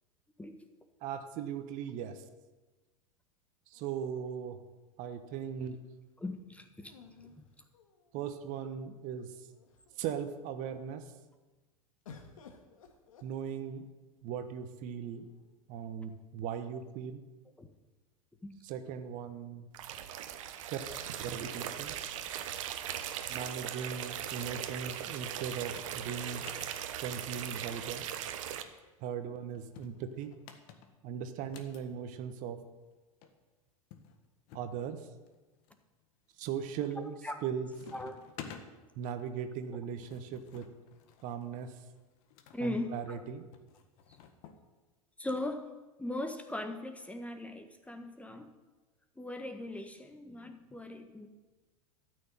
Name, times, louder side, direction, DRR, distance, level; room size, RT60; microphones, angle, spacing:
voice 1, 1.0-2.2 3.7-4.6 5.0-5.8 8.1-9.5 10.0-11.1 13.2-13.9 14.2-15.3 15.7-17.2 18.6-19.7 20.4-20.8 21.2-22.0 23.3-26.5 27.0-28.1 29.0-30.3 31.0-32.6 34.5-35.1 36.4-37.1 37.4-37.7 38.9-40.6 41.2-41.8 42.6-43.5, right 7 dB, 45° right, 9 dB, 1.3 m, -38 dB
sound 1, 3.7-4.8 6.8-8.3 9.1-9.2 9.5-10.1 12.0-13.9 14.9-15.5, left 5 dB, 70° left, 1.9 m, -56 dB
voice 2, 6.2-6.9 17.6-17.7 18.4-18.5 37.2-37.4 37.9-38.2 42.5-43.2 45.2-45.6 46.0-48.5 49.2-51.3, left 1 dB, 5° left, 7 dB, 1.4 m, -39 dB
sound 2, 19.7-28.6, right 10 dB, 60° right, 1.2 m, -39 dB
sound 3, 25.6-25.9 26.3-26.8 27.4-28.7 29.5-31.8 32.9-33.0 33.2-33.3 33.9-34.7 35.3-35.8 36.3-36.7 37.0-37.4 37.7-38.7 39.6-42.6 43.5-44.6, left 8 dB, 50° left, 1.7 m, -52 dB
13.5 x 6.5 x 9.1 m, 1.2 s
figure-of-eight pair, 85°, 18 cm